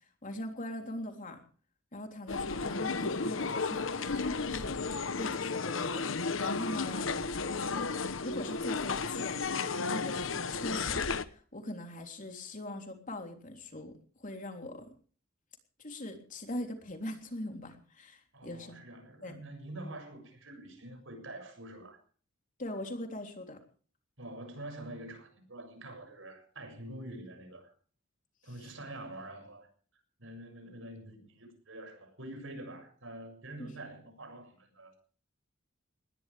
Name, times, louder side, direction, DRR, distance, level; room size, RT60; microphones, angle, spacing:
voice 1, 0.2-1.4 1.9-4.8 5.2-6.1 6.4-7.1 7.4-7.9 8.2-14.9 15.8-18.8 19.2-19.4 22.6-23.6 28.6-28.7 33.6-33.7, left 1 dB, 40° left, 3.5 m, -41 dB
sound 1, 2.3-11.2, left 4 dB, 80° left, 1.1 m, -33 dB
voice 2, 18.3-22.0 24.2-27.7 28.4-35.0, right 1 dB, 75° right, 7.2 m, -46 dB
20.5 x 17.5 x 3.5 m
head